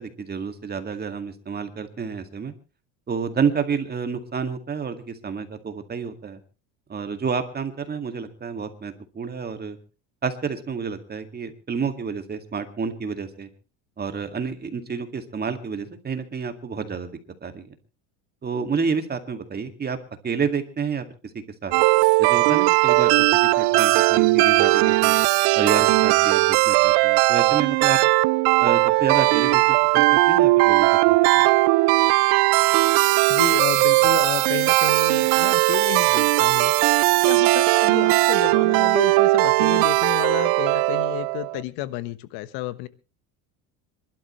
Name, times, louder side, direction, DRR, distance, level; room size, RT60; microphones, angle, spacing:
voice 1, 0.0-2.5 3.1-6.4 6.9-9.8 10.2-13.5 14.0-17.7 18.4-20.0 20.2-21.1 21.6-21.7 22.2-25.2 25.6-28.0 28.6-31.4, right 6 dB, 25° right, 8 dB, 2.1 m, -29 dB
sound 1, 21.7-41.6, right 22 dB, 75° right, 0.7 m, -18 dB
voice 2, 33.3-36.7 37.2-42.9, left 15 dB, 75° left, 15 dB, 1.3 m, -31 dB
26.5 x 12.0 x 3.1 m, 0.32 s
supercardioid pair, 115°, 39 cm